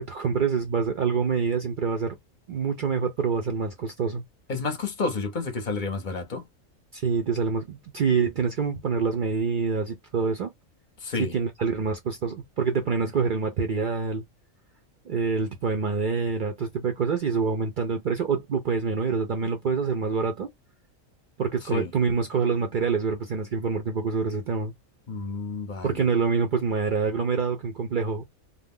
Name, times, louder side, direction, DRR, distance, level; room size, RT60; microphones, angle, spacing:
voice 1, 0.0-2.2 2.5-4.2 6.9-10.5 11.2-14.2 15.1-20.5 21.4-24.7 25.8-28.2, right 5 dB, 65° right, 0.5 m, -26 dB
voice 2, 4.5-6.4 11.0-11.4 21.7-21.9 25.1-26.0, left 4 dB, 45° left, 0.7 m, -30 dB
2.4 x 2.1 x 3.4 m
omnidirectional pair, 1.4 m